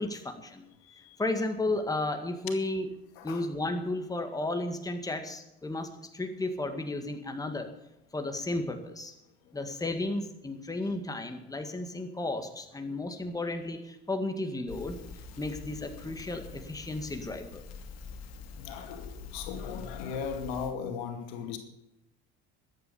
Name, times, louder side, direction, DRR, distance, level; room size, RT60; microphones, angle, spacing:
voice 1, 0.0-0.7 1.2-2.9 3.2-7.7 8.1-9.1 9.5-15.0 15.4-17.6, left 2 dB, 10° left, 2.0 m, -33 dB
voice 2, 0.8-1.2 3.2-3.4 18.6-21.6, left 6 dB, 85° left, 2.4 m, -37 dB
Crackle, 14.7-20.7, left 4 dB, 55° left, 2.7 m, -45 dB
13.5 x 8.9 x 6.9 m
supercardioid pair, 95°, 31 cm